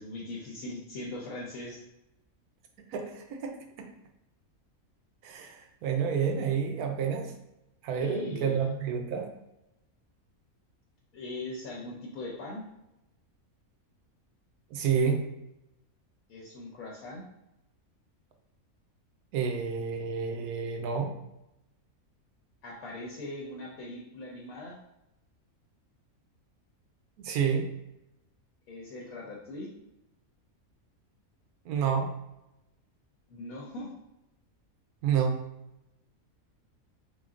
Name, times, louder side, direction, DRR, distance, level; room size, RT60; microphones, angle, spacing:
voice 1, 0.0-1.8 8.0-8.7 11.1-12.6 16.3-17.3 22.6-24.8 28.7-29.7 33.3-33.9, left 2 dB, 75° left, -3 dB, 1.1 m, -40 dB
voice 2, 2.9-3.9 5.2-7.3 7.8-9.3 14.7-15.2 19.3-21.1 27.2-27.7 31.7-32.1 35.0-35.4, right 6 dB, 85° right, 4 dB, 1.1 m, -29 dB
3.9 x 3.6 x 2.4 m, 0.89 s
omnidirectional pair, 1.5 m